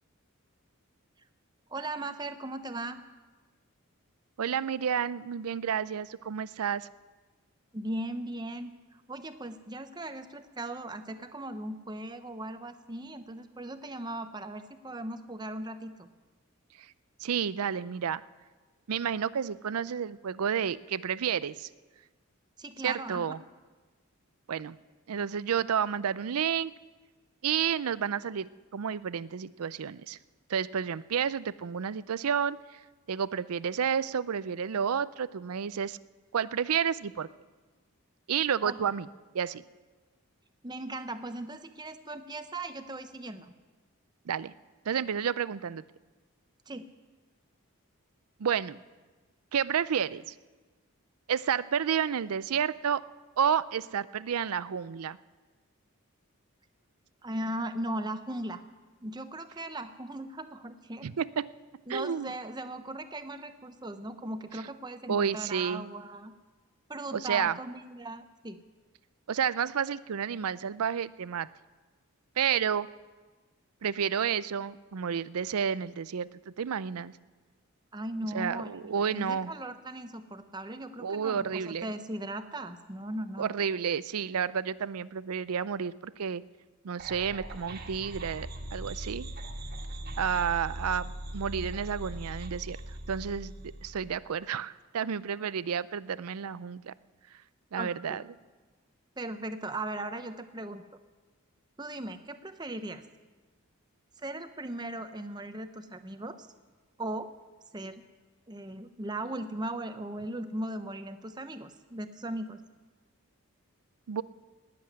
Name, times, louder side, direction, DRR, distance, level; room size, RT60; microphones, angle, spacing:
voice 1, 1.7-3.0 7.7-8.7 9.1-16.1 22.6-23.3 38.6-38.8 40.6-43.5 46.7-46.9 57.2-58.6 59.0-61.1 61.9-66.3 66.9-68.6 77.9-83.5 97.8-98.3 99.2-100.8 101.8-103.0 104.2-106.5 107.0-107.3 107.7-108.0 108.5-112.6, right 1 dB, 20° right, 9 dB, 0.8 m, -38 dB
voice 2, 4.4-6.9 17.2-18.2 18.9-21.7 22.8-23.4 24.5-24.8 25.1-26.7 27.4-30.2 30.5-32.8 33.1-36.0 36.3-37.3 38.3-39.1 39.3-39.6 44.3-44.5 44.9-45.8 48.4-48.8 49.5-50.3 51.3-53.0 53.4-55.2 61.0-61.5 61.9-62.3 64.5-64.6 65.1-65.9 67.1-67.6 69.3-71.5 72.4-72.9 73.8-76.3 76.6-77.1 78.3-79.5 81.0-81.9 83.4-86.4 86.8-89.3 90.2-92.8 93.1-93.5 93.8-96.9 97.7-98.2 114.1-114.2, right 7 dB, 85° right, 18 dB, 0.5 m, -30 dB
sound 1, 87.0-94.2, right 1 dB, 40° right, 1.7 m, -40 dB
19.0 x 7.8 x 9.8 m, 1.3 s
head